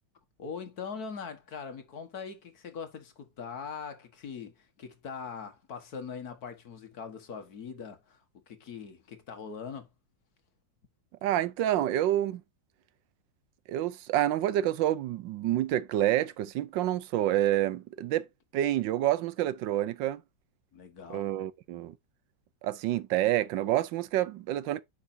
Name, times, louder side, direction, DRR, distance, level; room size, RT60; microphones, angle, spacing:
voice 1, 0.4-4.5 4.8-8.2 8.5-9.9 20.7-21.3, left 6 dB, 55° left, 1.8 m, -41 dB
voice 2, 11.2-12.4 13.7-18.3 18.5-20.2 21.1-21.9 22.6-24.8, right 13 dB, 80° right, 1.3 m, -28 dB
9.5 x 5.9 x 2.7 m
omnidirectional pair, 2.0 m